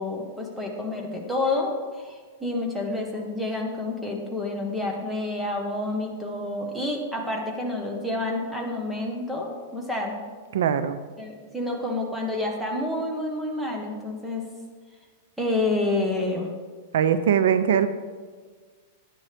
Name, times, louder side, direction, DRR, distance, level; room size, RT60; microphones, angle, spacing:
voice 1, 0.0-10.1 11.2-14.4 15.4-16.5, left 2 dB, ahead, 0 dB, 1.3 m, -29 dB
voice 2, 10.5-11.0 16.9-17.9, right 8 dB, 75° right, 12 dB, 0.5 m, -21 dB
11.0 x 10.0 x 3.4 m, 1.5 s
supercardioid pair, 160°, 0 cm